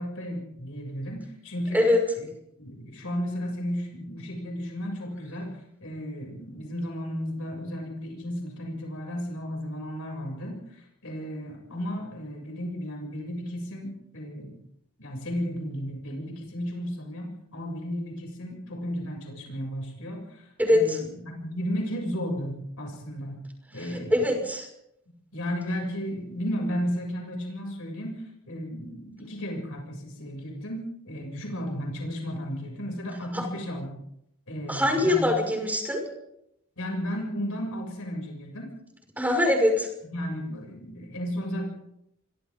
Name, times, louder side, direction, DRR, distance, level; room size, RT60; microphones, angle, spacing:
voice 1, 0.0-1.9 2.2-2.3 2.6-14.6 15.0-23.4 23.7-24.4 25.3-34.0 34.5-35.6 36.8-38.7 40.1-41.7, equal, 70° left, 0 dB, 7.1 m, -34 dB
voice 2, 20.6-21.0 23.8-24.7 33.3-33.4 34.7-36.0 39.2-39.9, left 1 dB, 10° right, 2 dB, 5.7 m, -23 dB
28.5 x 24.5 x 3.8 m, 0.79 s
head